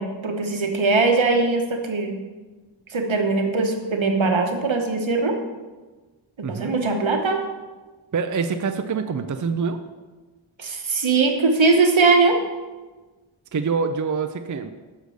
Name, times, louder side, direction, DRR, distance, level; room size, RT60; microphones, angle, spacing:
voice 1, 0.0-2.2 2.9-5.4 6.4-7.4 10.6-12.4, right 3 dB, 75° right, 4 dB, 1.1 m, -21 dB
voice 2, 6.4-6.7 8.1-9.8 13.5-14.7, right 5 dB, 40° right, 8 dB, 0.5 m, -25 dB
6.6 x 5.0 x 6.3 m, 1.3 s
wide cardioid pair, 50°, 47 cm